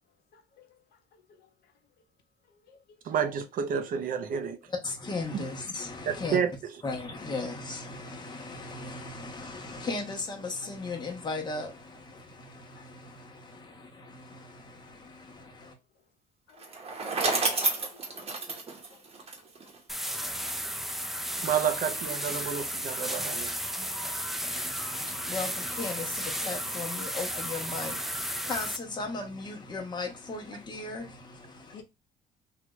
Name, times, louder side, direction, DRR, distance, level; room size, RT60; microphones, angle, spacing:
voice 1, 0.3-0.7 2.7-2.8 12.8-12.9 16.5-16.7 17.7-18.6 18.9-19.0 24.8-24.9 31.7-31.8, left 7 dB, 75° left, 0.8 m, -54 dB
voice 2, 3.0-4.6 5.3-5.4 6.3-6.5 21.4-23.5, right 8 dB, 55° right, 0.6 m, -29 dB
voice 3, 4.7-6.4 6.8-15.8 24.5-31.8, left 3 dB, 25° left, 1.0 m, -37 dB
Bicycle, 16.6-19.8, right 3 dB, 35° right, 1.0 m, -30 dB
sound 1, 19.9-28.8, equal, ahead, 0.4 m, -34 dB
3.2 x 2.4 x 3.1 m
cardioid pair, 110°, 17 cm